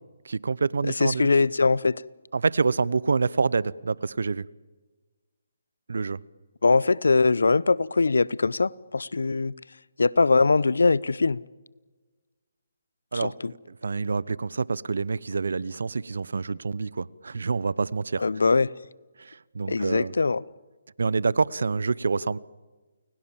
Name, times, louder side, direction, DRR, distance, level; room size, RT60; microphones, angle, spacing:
voice 1, 0.2-1.3 2.3-4.4 5.9-6.2 13.1-13.6 13.8-18.3 19.2-20.1 21.0-22.4, right 4 dB, 75° right, 22 dB, 0.9 m, -27 dB
voice 2, 1.0-2.0 6.6-9.5 10.0-11.4 13.1-13.5 18.2-18.7 19.7-20.4, left 3 dB, 80° left, 22 dB, 0.8 m, -22 dB
30.0 x 22.0 x 7.3 m, 1.3 s
hypercardioid pair, 155°, 0 cm